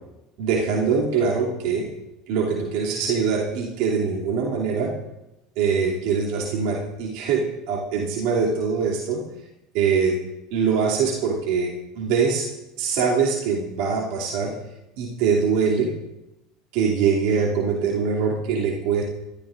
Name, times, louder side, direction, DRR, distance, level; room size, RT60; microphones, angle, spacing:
voice 1, 0.4-1.9 2.3-5.0 5.6-9.2 9.7-10.2 10.5-12.5 12.8-14.6 15.0-15.9 16.7-19.0, right 5 dB, 65° right, -3 dB, 2.7 m, -23 dB
23.0 x 13.5 x 2.6 m, 0.94 s
hypercardioid pair, 80°, 0 cm